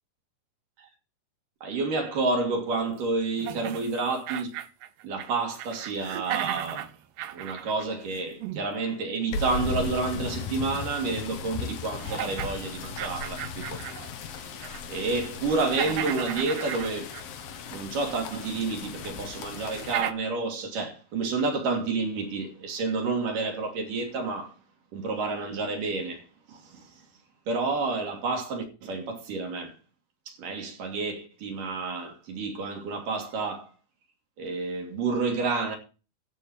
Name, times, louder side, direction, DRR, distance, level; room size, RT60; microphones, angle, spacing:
voice 1, 1.6-4.5 5.0-6.9 7.3-13.8 14.4-14.5 14.9-17.1 17.7-24.5 24.9-27.0 27.5-29.8 30.3-33.7 34.4-35.8, right 3 dB, 55° right, 4.0 m, -30 dB
sound 1, 3.4-5.3 5.6-8.7 10.8-10.9 11.5-11.6 12.0-14.1 14.5-14.9 15.2-17.4 18.5-18.6 19.1-19.2 19.7-20.1, right 12 dB, 80° right, 2.7 m, -35 dB
sound 2, 9.3-20.0, left 5 dB, 70° left, 3.1 m, -37 dB
14.5 x 5.1 x 7.9 m
omnidirectional pair, 4.7 m